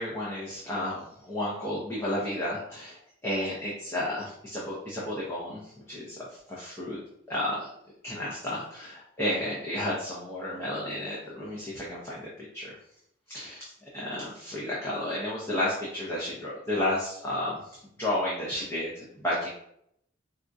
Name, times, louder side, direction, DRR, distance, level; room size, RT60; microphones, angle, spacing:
voice 1, 0.0-5.6 5.9-6.2 6.5-7.0 7.3-7.7 8.0-12.7 13.3-19.5, left 1 dB, 15° left, -7 dB, 0.6 m, -32 dB
4.2 x 2.3 x 2.5 m, 0.73 s
head